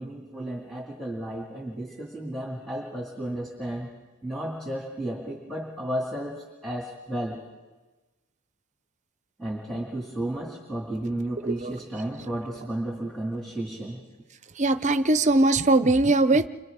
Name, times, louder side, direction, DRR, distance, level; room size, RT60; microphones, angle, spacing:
voice 1, 0.0-3.9 4.2-7.4 9.4-14.0, right 1 dB, ahead, -2 dB, 2.2 m, -33 dB
voice 2, 14.6-16.5, right 2 dB, 30° right, 12 dB, 0.6 m, -21 dB
30.0 x 25.5 x 3.6 m, 1.2 s
head